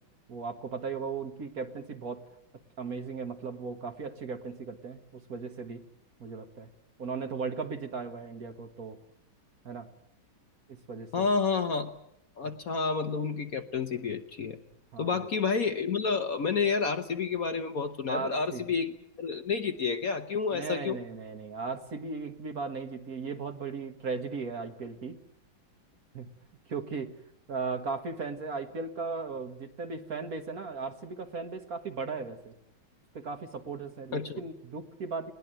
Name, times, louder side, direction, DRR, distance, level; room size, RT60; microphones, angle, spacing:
voice 1, 0.3-2.2 2.8-5.8 6.2-6.7 7.0-9.0 9.7-9.9 10.7-11.3 14.9-15.2 18.1-18.7 20.5-25.2 26.1-26.3 26.7-27.1 27.5-32.5 33.1-35.3, right 4 dB, 45° right, 6 dB, 1.8 m, -37 dB
voice 2, 11.1-11.9 12.4-14.6 15.0-21.0 34.1-34.4, left 5 dB, 50° left, 7 dB, 1.2 m, -30 dB
21.0 x 18.5 x 9.0 m, 0.80 s
omnidirectional pair, 2.2 m